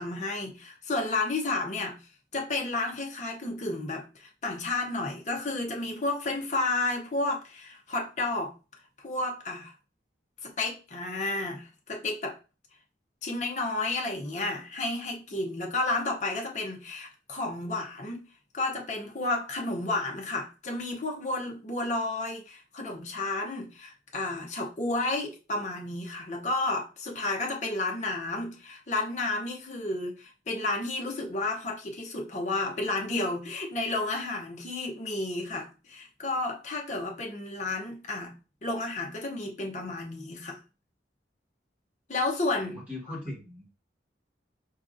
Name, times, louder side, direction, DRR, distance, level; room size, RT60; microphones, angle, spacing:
voice 1, 0.0-2.0 2.3-8.5 9.0-9.7 10.4-12.3 13.2-18.3 18.5-38.3 38.6-40.6 42.1-42.8, left 2 dB, 40° left, 0.7 m, -31 dB
voice 2, 42.6-43.7, left 1 dB, 5° right, 1.6 m, -39 dB
4.6 x 2.8 x 2.5 m
head